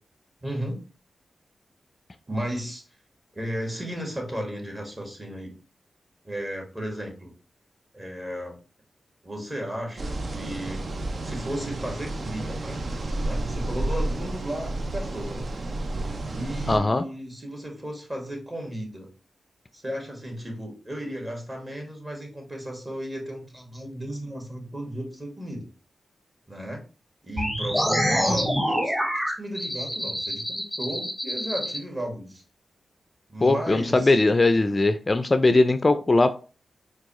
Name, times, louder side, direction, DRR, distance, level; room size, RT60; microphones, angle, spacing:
voice 1, 0.4-0.8 2.3-2.8 3.3-5.5 6.2-7.3 7.9-8.6 9.2-10.8 11.2-12.9 13.2-15.5 16.3-19.1 19.7-25.7 26.5-26.8 27.2-29.0 29.4-32.4 33.3-34.2, equal, 30° right, 1 dB, 1.7 m, -34 dB
sound 1, 10.0-16.8, right 2 dB, 55° right, 0.5 m, -31 dB
voice 2, 16.7-17.0 33.4-36.3, left 2 dB, 35° left, 10 dB, 0.3 m, -20 dB
sound 2, 27.4-31.8, equal, 10° right, 1.1 m, -26 dB
4.5 x 2.3 x 3.0 m, 0.35 s
supercardioid pair, 45°, 0 cm